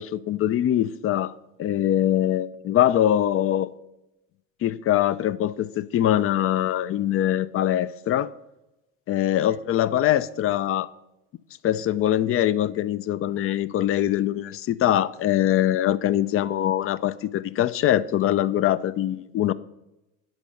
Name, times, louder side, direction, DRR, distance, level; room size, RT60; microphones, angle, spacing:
voice 1, 0.0-1.3 1.6-3.7 4.6-8.3 9.1-10.9 11.6-19.5, left 12 dB, 35° left, 0.4 m, -23 dB
10.5 x 5.3 x 6.5 m
hypercardioid pair, 80°, 40 cm